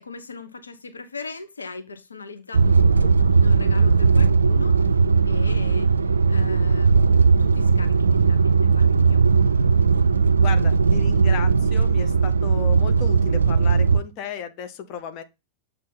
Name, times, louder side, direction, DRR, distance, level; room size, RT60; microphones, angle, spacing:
voice 1, 0.0-7.0 7.4-9.2, left 4 dB, 75° left, 0.8 m, -40 dB
sound 1, 2.5-14.0, right 5 dB, 75° right, 0.3 m, -18 dB
voice 2, 10.4-15.2, left 7 dB, 45° left, 0.8 m, -34 dB
7.4 x 3.4 x 4.0 m
figure-of-eight pair, 90°, 0 cm